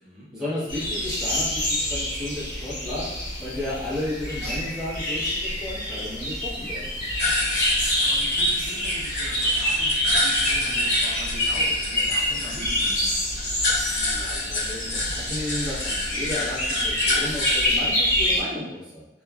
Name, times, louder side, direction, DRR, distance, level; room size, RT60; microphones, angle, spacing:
voice 1, 0.3-3.1 3.4-6.9 14.0-19.1, left 1 dB, 5° right, -10 dB, 0.8 m, -33 dB
sound 1, 0.7-18.4, left 1 dB, 45° left, 1.0 m, -26 dB
sound 2, 7.2-17.7, left 2 dB, 70° left, 0.8 m, -29 dB
voice 2, 8.0-13.1, equal, 40° right, -7 dB, 0.6 m, -41 dB
2.8 x 2.2 x 2.2 m, 0.96 s
head